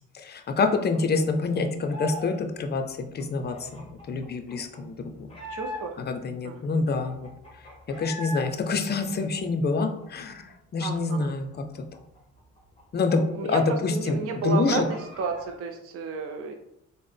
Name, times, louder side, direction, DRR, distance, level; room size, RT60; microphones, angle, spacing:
voice 1, 0.1-5.1 6.0-7.3 8.0-11.5 12.9-13.2 13.5-14.2 14.4-14.8, left 4 dB, 35° left, 6 dB, 0.4 m, -26 dB
sound 1, 0.7-2.4 2.6-6.1 6.6-6.7 6.8-8.5 8.8-10.5 10.8-10.9 11.2-13.7 14.0-14.1 14.4-15.6, left 1 dB, 20° left, 1.0 m, -42 dB
voice 2, 5.5-6.0 6.4-6.7 10.8-11.4 13.2-16.6, right 5 dB, 50° right, 4 dB, 0.5 m, -32 dB
3.7 x 2.1 x 3.3 m, 0.81 s
cardioid pair, 90°, 30 cm